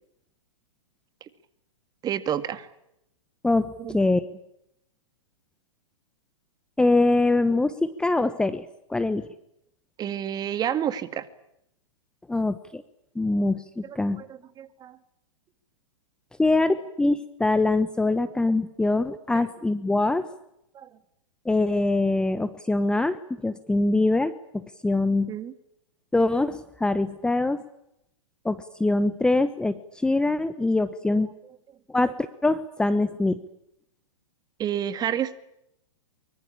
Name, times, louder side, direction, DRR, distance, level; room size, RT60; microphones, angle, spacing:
voice 1, 2.0-2.7 3.8-4.0 10.0-11.3 13.8-15.0 19.3-19.4 20.7-20.9 25.3-25.5 34.6-35.4, right 10 dB, 25° right, 13 dB, 2.1 m, -30 dB
voice 2, 3.4-4.2 6.8-9.3 12.3-12.8 13.1-14.2 16.4-20.3 21.4-25.3 26.1-27.6 28.4-31.3 31.9-32.1 32.4-33.4, left 2 dB, 5° left, 13 dB, 1.1 m, -23 dB
24.5 x 24.0 x 8.7 m, 0.79 s
hypercardioid pair, 125°, 17 cm